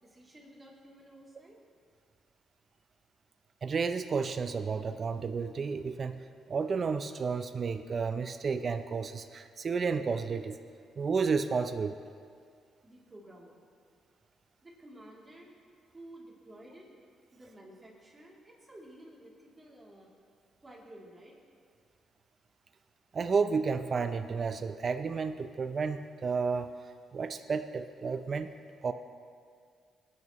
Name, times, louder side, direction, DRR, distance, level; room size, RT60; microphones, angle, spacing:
voice 1, 0.0-1.6 12.8-13.6 14.6-15.5 15.9-16.9 17.3-20.1 20.6-21.3, right 1 dB, 20° right, -4 dB, 2.8 m, -52 dB
voice 2, 3.6-6.2 6.5-10.6 11.0-12.0 23.1-26.8 27.1-28.5 28.8-28.9, right 5 dB, 45° right, 8 dB, 0.5 m, -31 dB
19.0 x 9.4 x 3.0 m, 2.2 s
cardioid pair, 90°, 0 cm